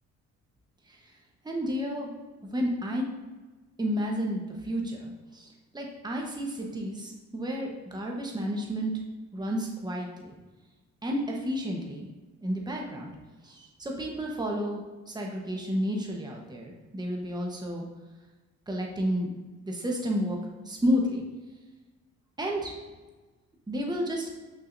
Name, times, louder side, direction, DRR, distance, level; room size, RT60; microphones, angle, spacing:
voice 1, 1.4-2.1 2.4-3.0 3.8-5.5 5.7-8.9 9.3-10.4 11.0-12.1 12.4-13.1 13.4-17.8 18.7-19.3 19.7-20.4 20.6-21.2 22.4-22.8 23.7-24.3, equal, 15° right, 0 dB, 1.2 m, -31 dB
6.0 x 5.9 x 2.7 m, 1.2 s
cardioid pair, 90°, 30 cm